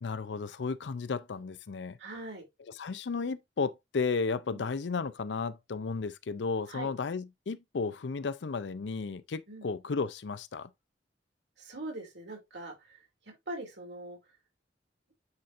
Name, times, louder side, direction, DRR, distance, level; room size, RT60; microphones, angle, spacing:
voice 1, 0.0-2.0 2.8-10.7, left 4 dB, 80° left, 0.5 m, -34 dB
voice 2, 2.0-2.5 4.5-4.6 6.7-6.9 9.5-9.7 11.6-14.2, right 2 dB, 85° right, 3.1 m, -42 dB
9.7 x 4.3 x 2.5 m
head